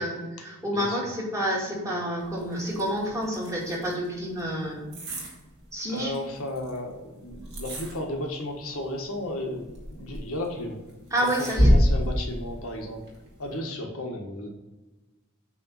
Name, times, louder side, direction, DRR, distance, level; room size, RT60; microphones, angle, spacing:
voice 1, 0.0-4.8 5.7-6.1 11.1-11.7, equal, 15° right, -4 dB, 2.1 m, -29 dB
sound 1, 2.2-13.6, equal, 50° right, 2.2 m, -29 dB
voice 2, 5.9-10.8 11.6-13.0 13.4-14.5, left 1 dB, 85° left, 2 dB, 1.5 m, -34 dB
8.6 x 3.5 x 5.6 m, 1.2 s
head